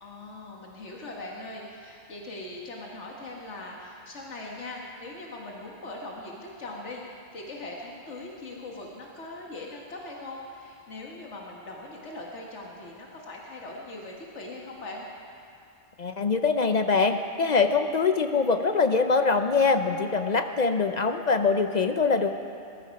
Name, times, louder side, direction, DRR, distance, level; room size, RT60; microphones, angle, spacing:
voice 1, 0.0-15.1, left 2 dB, 90° left, -1 dB, 1.8 m, -40 dB
voice 2, 16.0-22.3, left 4 dB, 45° left, 7 dB, 0.7 m, -23 dB
19.5 x 13.5 x 5.3 m, 2.5 s
omnidirectional pair, 1.2 m